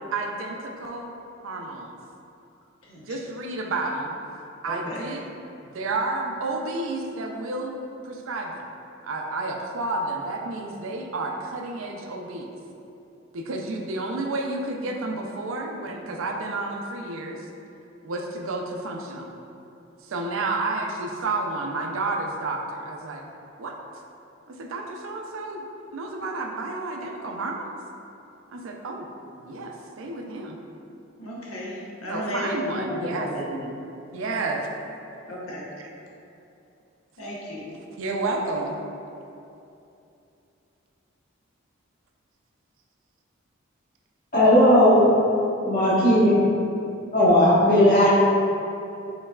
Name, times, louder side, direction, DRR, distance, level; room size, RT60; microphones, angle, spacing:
voice 1, 0.1-1.1 1.4-2.0 3.1-4.2 4.6-5.3 5.6-8.6 9.0-12.5 13.3-17.4 18.0-19.3 20.1-23.2 23.6-23.8 24.6-25.7 25.9-27.7 28.5-29.1 29.4-30.6 32.1-33.3 34.1-34.7 35.8-35.9 37.9-38.8, right 2 dB, 75° right, 1 dB, 0.5 m, -31 dB
voice 2, 4.7-5.1 31.2-33.8 35.3-35.7 37.2-37.7, equal, 85° left, -5 dB, 1.0 m, -33 dB
voice 3, 44.3-45.0 45.6-46.4 47.1-48.1, left 1 dB, 45° left, -11 dB, 1.4 m, -16 dB
5.3 x 3.9 x 2.4 m, 2.8 s
head